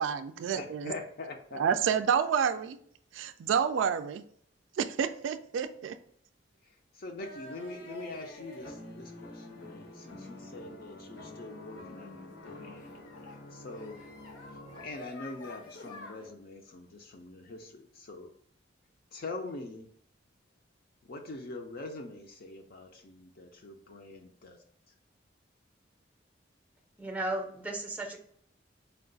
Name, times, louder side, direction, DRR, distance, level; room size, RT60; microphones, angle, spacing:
voice 1, 0.0-0.9 1.5-2.8 3.1-4.2 4.8-6.0, right 7 dB, 80° right, 9 dB, 0.3 m, -29 dB
voice 2, 0.5-1.6 6.9-14.0 14.8-18.3 19.1-19.9 21.1-24.6, left 2 dB, 50° left, 3 dB, 0.5 m, -44 dB
sound 1, 7.2-16.3, left 2 dB, 90° left, 1.1 m, -47 dB
voice 3, 27.0-28.2, right 1 dB, 10° right, 3 dB, 0.6 m, -35 dB
4.3 x 2.4 x 3.8 m, 0.63 s
head